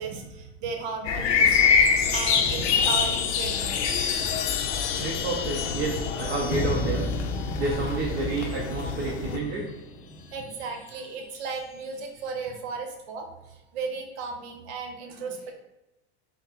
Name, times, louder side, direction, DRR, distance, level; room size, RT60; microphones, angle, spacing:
voice 1, 0.0-1.6 2.1-3.8 4.6-4.7 10.3-15.5, right 4 dB, 70° right, 4 dB, 0.9 m, -35 dB
sound 1, 1.0-9.4, left 6 dB, 85° left, 0.6 m, -26 dB
Chime, 1.3-9.1 10.3-10.9, left 7 dB, 40° left, 0.5 m, -34 dB
voice 2, 2.0-2.3 5.0-7.1 7.6-9.6 15.2-15.5, right 3 dB, 30° right, -2 dB, 0.7 m, -30 dB
sound 2, 6.5-10.5, left 1 dB, 20° left, 0.9 m, -33 dB
4.2 x 2.1 x 4.0 m, 0.97 s
supercardioid pair, 115°, 34 cm